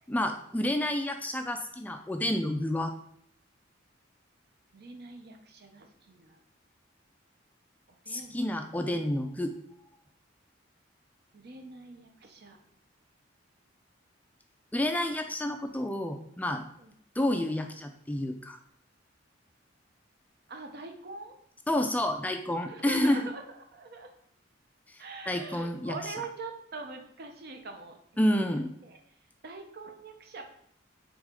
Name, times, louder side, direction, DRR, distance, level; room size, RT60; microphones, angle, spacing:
voice 1, 0.1-2.9 8.1-9.6 14.7-16.6 17.2-18.6 21.7-23.2 25.3-26.0 28.2-28.7, left 1 dB, 10° left, 6 dB, 0.3 m, -29 dB
voice 2, 4.7-6.4 7.9-9.0 11.3-12.6 16.8-16.9 20.5-21.3 22.6-23.4 23.7-24.1 25.0-29.0 29.4-30.4, right 3 dB, 55° right, 4 dB, 0.8 m, -44 dB
6.1 x 4.1 x 3.7 m, 0.69 s
head